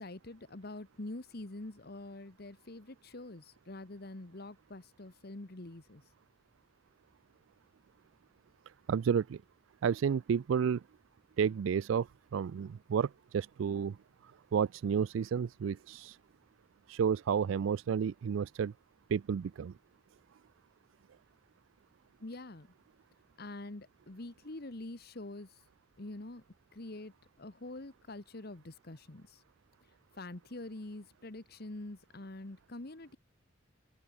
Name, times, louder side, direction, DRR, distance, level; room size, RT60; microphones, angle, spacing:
voice 1, 0.0-6.0 22.2-22.7 23.4-25.6 26.0-26.4 26.7-29.4 30.2-33.2, left 2 dB, 55° left, 1.4 m, -45 dB
voice 2, 8.9-9.4 9.8-10.8 11.4-14.0 14.5-16.2 16.9-18.7 19.1-19.7, right 7 dB, 90° right, 0.4 m, -31 dB
open air
head